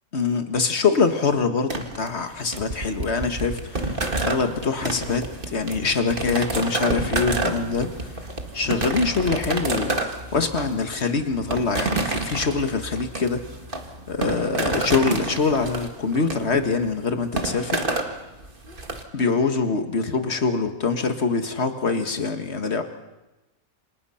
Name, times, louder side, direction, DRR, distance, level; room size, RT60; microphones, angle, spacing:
voice 1, 0.1-8.1 8.5-13.4 14.1-17.8 19.1-22.8, left 4 dB, 45° left, 7 dB, 1.9 m, -24 dB
sound 1, 1.7-19.0, right 2 dB, 35° right, 2.1 m, -29 dB
28.5 x 26.0 x 5.8 m, 1.0 s
omnidirectional pair, 1.6 m